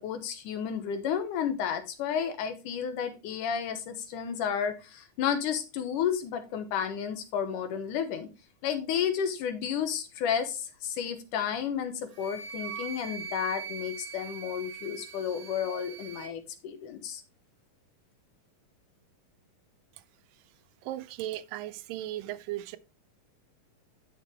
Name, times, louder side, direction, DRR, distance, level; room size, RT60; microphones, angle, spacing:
voice 1, 0.0-8.3 8.6-17.2, left 8 dB, 75° left, 2.5 m, -32 dB
Wind instrument woodwind instrument, 12.1-16.3, right 7 dB, 50° right, 1.0 m, -41 dB
voice 2, 20.8-22.8, right 14 dB, 85° right, 2.2 m, -36 dB
9.8 x 6.7 x 3.4 m
omnidirectional pair, 4.0 m